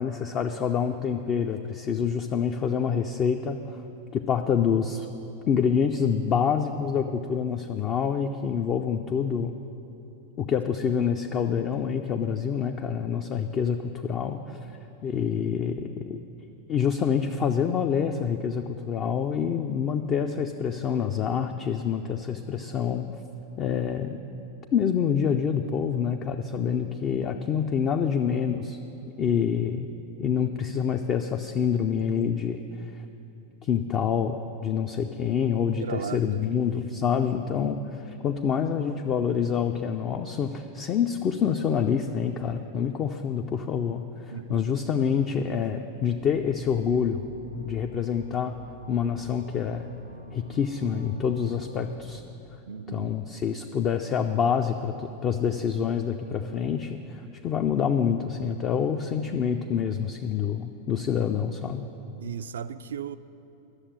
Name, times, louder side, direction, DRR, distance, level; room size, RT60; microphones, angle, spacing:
voice 1, 0.0-3.8 4.1-5.1 5.5-9.5 10.4-14.6 15.0-16.2 16.7-23.1 23.6-24.2 24.7-28.8 29.2-29.9 30.2-32.9 33.6-47.2 47.5-48.5 48.9-49.9 50.3-52.2 52.9-61.9, left 7 dB, 30° left, 0.5 m, -27 dB
voice 2, 35.8-36.2 44.3-44.6 52.7-53.1 62.2-63.2, right 7 dB, 65° right, 0.4 m, -35 dB
sound 1, 46.0-52.3, left 2 dB, 90° right, 0.8 m, -46 dB
11.5 x 7.2 x 8.7 m
figure-of-eight pair, 90°, 0 cm